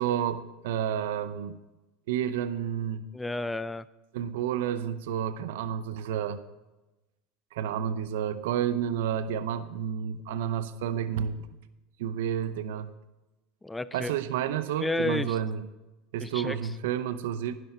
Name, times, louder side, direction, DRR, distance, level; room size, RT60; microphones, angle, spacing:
voice 1, 0.0-1.6 2.1-3.1 4.1-6.4 7.5-11.4 12.0-12.9 13.9-15.6 16.1-17.6, right 9 dB, 75° right, 13 dB, 0.7 m, -30 dB
voice 2, 3.1-3.9 13.6-14.2 14.8-15.4 16.2-16.7, left 2 dB, 10° left, 17 dB, 0.5 m, -31 dB
11.0 x 10.5 x 4.4 m, 1.1 s
hypercardioid pair, 85°, 0 cm